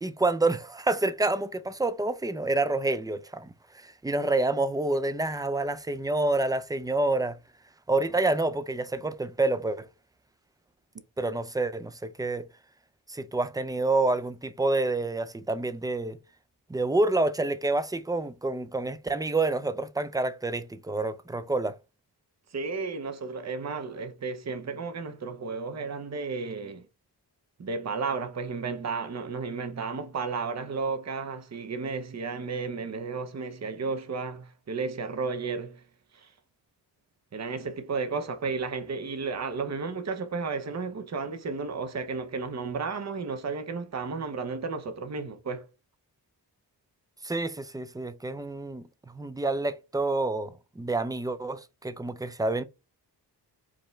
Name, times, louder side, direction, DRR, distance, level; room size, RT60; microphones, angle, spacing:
voice 1, 0.0-3.5 3.8-7.4 7.9-9.9 11.2-12.5 13.1-16.2 16.7-21.8 47.2-48.8 49.1-52.6, right 2 dB, 10° right, 0.4 m, -28 dB
voice 2, 22.5-26.9 27.6-35.8 36.1-36.3 37.3-45.7, right 4 dB, 40° right, 0.8 m, -33 dB
4.9 x 2.2 x 3.2 m
supercardioid pair, 40°, 43 cm